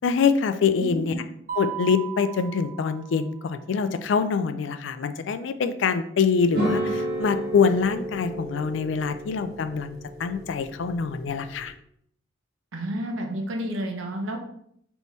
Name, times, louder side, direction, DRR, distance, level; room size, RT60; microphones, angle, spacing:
voice 1, 0.0-1.1 1.6-11.7, left 5 dB, 70° left, 10 dB, 0.4 m, -25 dB
voice 2, 0.8-1.2 12.7-14.4, right 1 dB, 90° right, 3 dB, 0.8 m, -30 dB
Mallet percussion, 1.5-3.6, right 11 dB, 45° right, 0.5 m, -36 dB
sound 1, 6.5-11.7, right 1 dB, 60° right, 1.3 m, -32 dB
4.0 x 3.5 x 3.1 m, 0.69 s
head